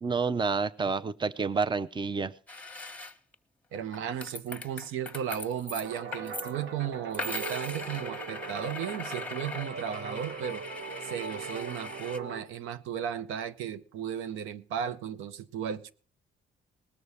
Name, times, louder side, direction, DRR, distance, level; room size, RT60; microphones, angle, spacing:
voice 1, 0.0-2.3, right 4 dB, 25° right, 0.6 m, -29 dB
sound 1, 2.5-3.3 3.7-6.5 7.1-12.2, left 2 dB, 5° left, 1.2 m, -40 dB
voice 2, 3.7-10.6 11.0-15.9, right 9 dB, 90° right, 0.7 m, -35 dB
sound 2, 5.8-12.4, right 5 dB, 65° right, 1.4 m, -40 dB
19.0 x 6.5 x 6.9 m
cardioid pair, 90°, 20 cm